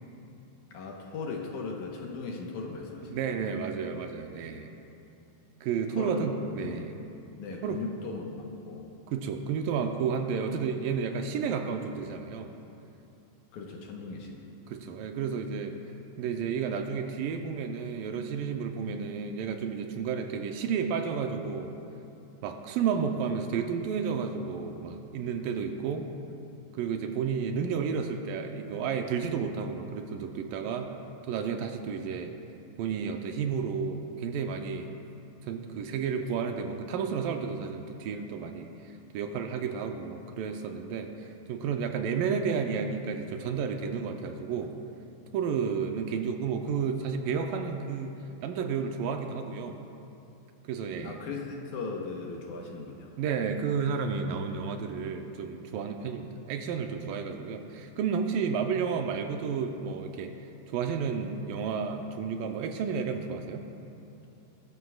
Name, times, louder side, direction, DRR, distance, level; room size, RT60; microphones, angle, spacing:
voice 1, 0.7-3.2 6.0-6.3 6.6-6.8 7.4-8.9 13.5-14.4 51.0-53.1, left 4 dB, 70° left, 0 dB, 2.2 m, -38 dB
voice 2, 3.1-4.7 5.6-6.9 7.6-7.8 9.1-12.5 14.7-15.8 16.2-21.7 22.4-26.1 26.7-30.9 31.3-32.3 32.8-34.9 35.5-38.7 39.1-44.7 45.3-48.2 48.4-49.8 50.7-51.2 53.2-60.3 60.7-63.7, right 6 dB, 80° right, 5 dB, 2.3 m, -31 dB
20.5 x 13.0 x 2.4 m, 2.8 s
omnidirectional pair, 4.1 m